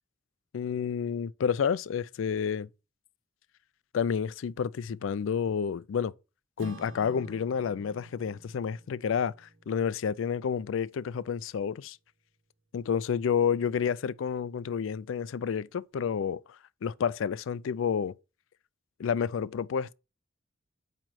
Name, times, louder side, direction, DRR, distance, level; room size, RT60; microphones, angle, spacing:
voice 1, 0.5-2.7 3.9-6.1 6.6-12.0 12.7-16.4 16.8-18.1 19.0-19.9, left 7 dB, 80° left, 0.3 m, -30 dB
Acoustic guitar / Strum, 6.6-11.3, right 1 dB, 85° right, 1.0 m, -51 dB
8.8 x 3.1 x 6.1 m
head